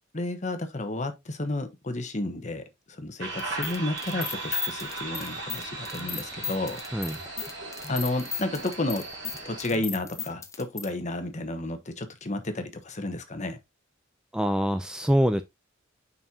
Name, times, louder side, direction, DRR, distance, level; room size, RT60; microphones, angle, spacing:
voice 1, 0.1-6.8 7.9-9.0 9.4-13.6, left 2 dB, 40° left, 1.1 m, -32 dB
sound 1, 3.2-9.7, right 3 dB, 65° right, 3.1 m, -37 dB
sound 2, 3.4-10.9, left 6 dB, 15° left, 0.8 m, -35 dB
voice 2, 14.3-15.4, equal, 5° right, 0.4 m, -24 dB
7.1 x 5.5 x 2.8 m
head